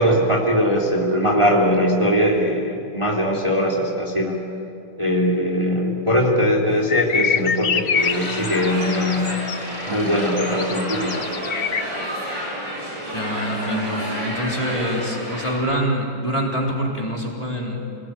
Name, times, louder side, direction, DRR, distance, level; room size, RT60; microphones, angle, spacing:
voice 1, 0.0-4.4 5.0-9.4 9.9-11.2, equal, 15° right, -3 dB, 3.1 m, -20 dB
sound 1, 6.9-11.8, left 6 dB, 65° left, 0.5 m, -25 dB
sound 2, 7.9-15.6, equal, 75° right, 8.8 m, -30 dB
voice 2, 13.0-17.8, equal, 15° left, -2 dB, 3.8 m, -25 dB
29.0 x 20.0 x 9.4 m, 2.6 s
omnidirectional pair, 2.0 m